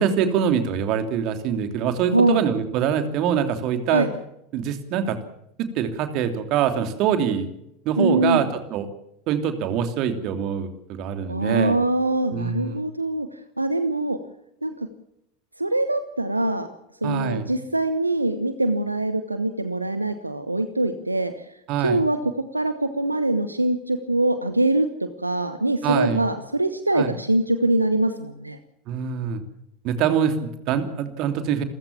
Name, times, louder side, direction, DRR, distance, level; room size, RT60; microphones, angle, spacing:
voice 1, 0.0-4.1 4.5-5.2 5.6-7.5 7.8-8.9 9.3-11.8 12.3-12.9 17.0-17.5 21.7-22.0 25.8-26.2 26.9-27.1 28.9-29.4 29.8-31.6, right 8 dB, 45° right, 8 dB, 3.0 m, -24 dB
voice 2, 8.0-8.4 11.3-13.3 13.6-14.2 14.6-14.9 15.6-16.7 17.0-21.4 21.8-28.6, right 2 dB, 85° right, 10 dB, 1.2 m, -23 dB
28.5 x 15.0 x 7.3 m, 0.81 s
figure-of-eight pair, 80°, 0 cm